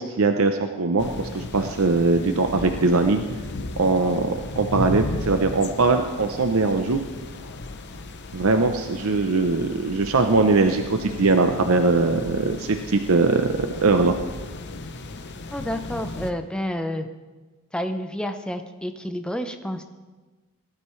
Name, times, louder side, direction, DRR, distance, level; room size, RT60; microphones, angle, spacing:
voice 1, 0.0-3.2 3.8-7.0 8.3-14.2, right 3 dB, 65° right, 5 dB, 0.7 m, -21 dB
sound 1, 1.0-16.3, left 2 dB, 50° left, 0.8 m, -35 dB
voice 2, 15.5-17.1 17.7-19.8, equal, 5° left, 7 dB, 0.7 m, -29 dB
20.0 x 12.0 x 3.2 m, 1.3 s
head